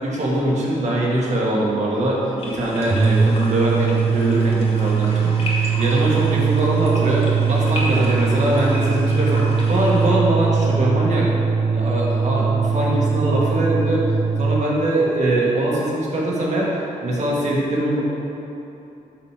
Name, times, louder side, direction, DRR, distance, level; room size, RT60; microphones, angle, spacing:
voice 1, 0.0-11.3 11.7-14.1 14.4-16.7 17.0-18.0, right 1 dB, 55° right, -5 dB, 1.8 m, -22 dB
sound 1, 2.4-10.1, left 1 dB, 45° left, 1.7 m, -33 dB
sound 2, 2.8-14.7, right 5 dB, 20° right, 0.4 m, -21 dB
6.8 x 6.1 x 4.9 m, 2.9 s
cardioid pair, 110°, 14 cm